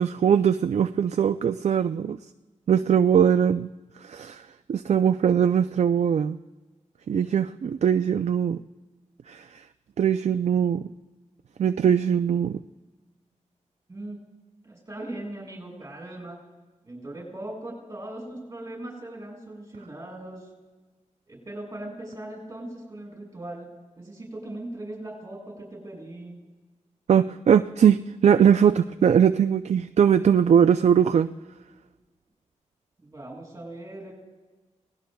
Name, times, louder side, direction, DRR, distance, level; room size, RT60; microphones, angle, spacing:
voice 1, 0.0-2.2 2.7-3.7 4.0-4.4 4.7-6.4 7.1-8.6 9.3-9.4 10.0-10.9 11.6-12.6 27.1-31.3, right 8 dB, 60° right, 9 dB, 0.4 m, -21 dB
voice 2, 14.6-16.4 16.8-20.5 21.3-23.7 24.0-26.5 33.0-34.1, right 1 dB, 25° right, -3 dB, 6.6 m, -39 dB
29.5 x 18.5 x 2.3 m, 1.2 s
wide cardioid pair, 110°, 13 cm